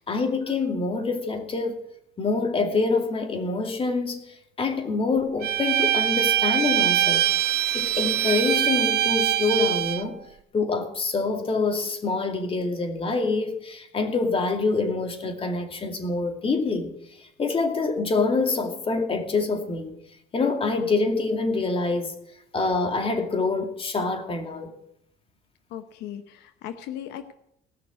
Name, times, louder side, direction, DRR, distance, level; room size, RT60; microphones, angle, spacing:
voice 1, 0.0-1.8 2.2-4.2 4.6-10.2 10.5-16.9 17.2-20.0 20.3-22.1 22.5-24.7, left 3 dB, 35° left, 5 dB, 2.4 m, -26 dB
Bowed string instrument, 5.4-10.1, right 12 dB, 75° right, 0.7 m, -23 dB
voice 2, 25.7-27.3, left 10 dB, 85° left, 9 dB, 0.9 m, -37 dB
18.0 x 6.4 x 9.4 m, 0.78 s
cardioid pair, 110°, 17 cm